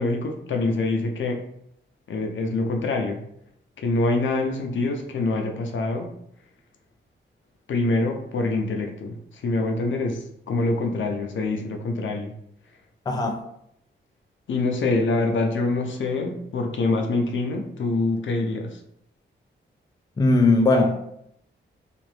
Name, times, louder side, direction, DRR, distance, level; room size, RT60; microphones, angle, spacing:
voice 1, 0.0-1.4 2.1-3.2 3.8-6.1 7.7-12.3 14.5-18.8, left 2 dB, 70° left, 3 dB, 0.6 m, -25 dB
voice 2, 13.1-13.4 20.2-21.0, left 2 dB, 20° left, 4 dB, 0.4 m, -19 dB
2.8 x 2.5 x 3.2 m, 0.74 s
cardioid pair, 90°, 20 cm